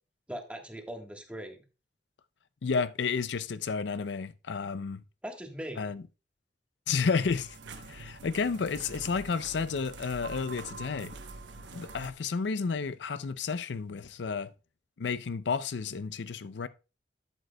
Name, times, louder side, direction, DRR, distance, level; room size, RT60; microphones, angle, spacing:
voice 1, 0.3-1.6 5.2-5.9, equal, 5° right, 1.4 m, -40 dB
voice 2, 2.6-5.0 5.8-6.0 6.9-7.6 7.9-11.1 11.7-14.5 15.0-16.7, left 5 dB, 80° left, 0.5 m, -31 dB
sound 1, 7.2-12.1, right 3 dB, 90° right, 0.9 m, -45 dB
12.0 x 7.8 x 2.2 m
head